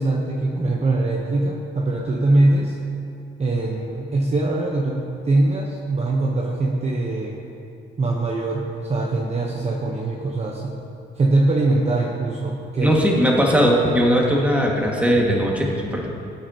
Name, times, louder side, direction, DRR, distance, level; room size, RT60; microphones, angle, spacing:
voice 1, 0.0-2.7 3.4-7.4 8.0-10.8 11.2-13.0, right 2 dB, 35° right, -1 dB, 1.0 m, -22 dB
voice 2, 12.8-16.1, equal, 5° right, -2 dB, 1.9 m, -19 dB
16.5 x 8.6 x 2.9 m, 2.6 s
cardioid pair, 90°, 20 cm